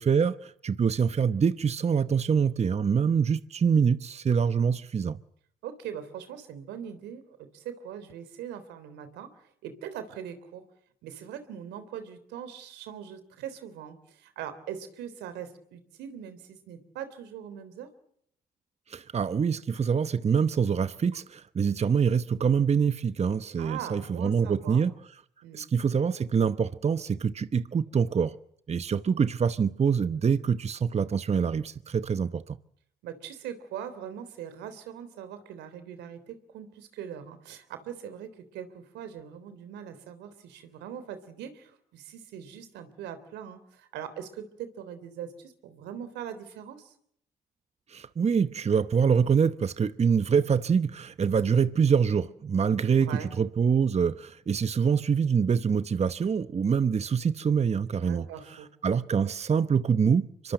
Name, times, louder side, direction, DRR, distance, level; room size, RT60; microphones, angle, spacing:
voice 1, 0.0-5.2 18.9-24.9 25.5-28.4 28.7-32.6 47.9-60.5, right 6 dB, 40° right, 1.0 m, -25 dB
voice 2, 5.6-9.3 9.6-10.6 11.0-17.9 23.6-24.8 25.4-25.7 33.0-46.9 52.9-53.3 58.0-58.7, right 9 dB, 90° right, 3.4 m, -41 dB
25.5 x 22.5 x 7.9 m
supercardioid pair, 65°, 17 cm